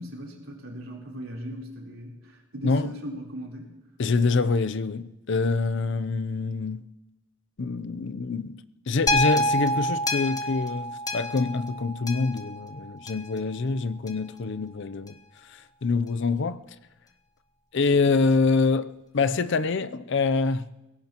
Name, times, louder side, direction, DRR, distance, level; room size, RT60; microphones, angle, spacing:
voice 1, 0.0-3.7, equal, 85° right, 3.7 m, -38 dB
voice 2, 4.0-6.9 7.6-15.2 15.5-16.6 17.7-20.7, left 4 dB, 60° left, 0.5 m, -25 dB
sound 1, 9.1-13.4 14.1-14.2, left 1 dB, 20° left, 1.2 m, -27 dB
22.5 x 17.5 x 3.0 m
head